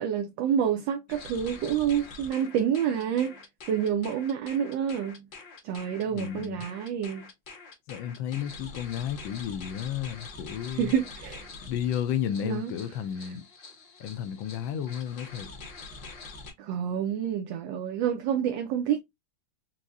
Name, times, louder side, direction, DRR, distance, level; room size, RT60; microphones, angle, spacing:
voice 1, 0.0-3.4 3.7-5.3 5.6-7.3 10.7-11.5 12.4-12.7 16.6-19.0, right 8 dB, 75° right, 1.2 m, -28 dB
sound 1, 1.1-16.5, left 4 dB, 50° left, 0.9 m, -45 dB
voice 2, 6.1-6.7 7.9-10.9 11.6-13.4 14.0-15.5, left 9 dB, 75° left, 1.3 m, -32 dB
4.6 x 2.0 x 2.6 m
omnidirectional pair, 2.3 m